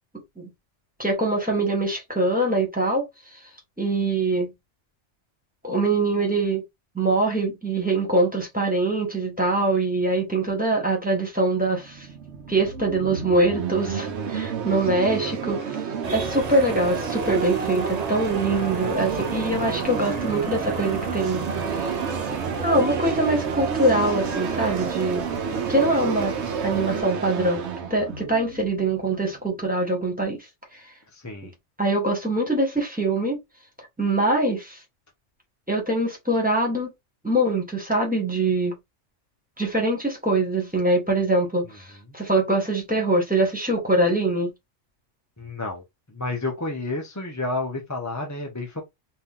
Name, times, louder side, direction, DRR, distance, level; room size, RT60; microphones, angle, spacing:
voice 1, 1.0-3.1 3.8-4.5 5.6-6.6 6.9-12.1 12.5-15.8 16.1-21.4 21.8-21.9 22.6-25.2 25.7-26.3 26.6-27.6 27.9-30.4 31.8-33.4 34.0-34.8 35.7-36.9 37.2-38.7 39.6-44.5, right 2 dB, 5° right, 1.6 m, -23 dB
sound 1, 11.7-29.5, right 7 dB, 70° right, 1.1 m, -30 dB
sound 2, 16.0-27.0, right 4 dB, 40° right, 0.7 m, -34 dB
voice 2, 31.1-31.5 45.4-45.8 46.1-48.8, left 2 dB, 20° left, 0.6 m, -30 dB
4.3 x 2.7 x 3.7 m
omnidirectional pair, 1.2 m